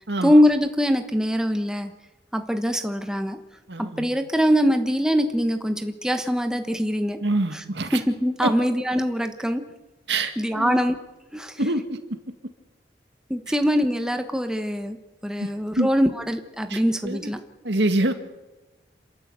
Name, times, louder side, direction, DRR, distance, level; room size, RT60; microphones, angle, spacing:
voice 1, 0.2-1.9 2.3-3.4 3.8-7.2 7.5-7.6 7.9-9.6 10.4-10.9 11.3-11.6 13.3-15.0 15.2-17.4, equal, 5° right, 6 dB, 1.1 m, -23 dB
voice 2, 3.7-4.1 7.2-8.0 8.4-8.5 10.1-10.8 11.6-12.0 15.4-15.5 15.8-15.9 16.7-17.3 17.6-18.1, right 2 dB, 75° right, 8 dB, 2.0 m, -25 dB
27.5 x 13.0 x 8.1 m, 1.1 s
head